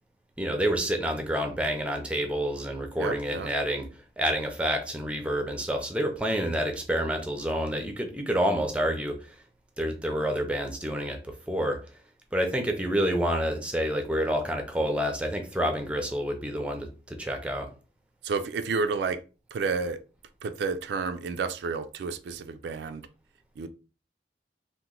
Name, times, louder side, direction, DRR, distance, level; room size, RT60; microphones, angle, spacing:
voice 1, 0.4-3.9 4.2-9.2 9.8-11.2 11.5-11.8 12.3-17.7, equal, 5° right, 0.4 m, -28 dB
voice 2, 3.0-3.5 18.2-19.2 19.5-20.0 20.4-23.0 23.6-23.7, right 4 dB, 70° right, 0.3 m, -30 dB
2.9 x 2.1 x 3.7 m
head